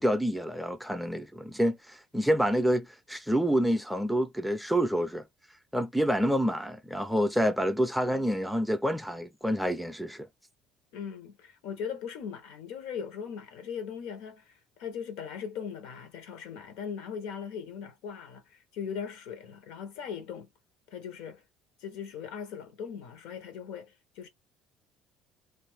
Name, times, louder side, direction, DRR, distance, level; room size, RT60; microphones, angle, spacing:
voice 1, 0.0-5.2 5.7-10.3, equal, ahead, 0.4 m, -28 dB
voice 2, 10.9-20.5 20.9-21.4 21.8-24.3, left 7 dB, 85° left, 1.0 m, -39 dB
2.6 x 2.5 x 3.4 m
cardioid pair, 135°, 0 cm